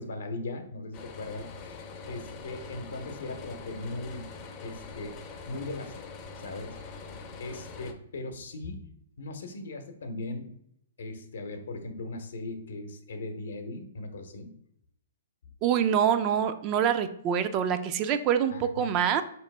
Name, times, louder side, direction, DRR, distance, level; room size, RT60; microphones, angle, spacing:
voice 1, 0.0-4.2 4.6-5.2 5.5-6.0 6.4-6.8 7.3-8.8 9.2-10.5 11.0-14.5 18.5-18.9, left 2 dB, 75° left, 6 dB, 0.7 m, -38 dB
sound 1, 0.9-7.9, left 4 dB, 30° left, 0.5 m, -43 dB
voice 2, 15.6-19.2, right 8 dB, 35° right, 10 dB, 0.3 m, -25 dB
4.0 x 3.0 x 3.2 m, 0.74 s
hypercardioid pair, 135°, 0 cm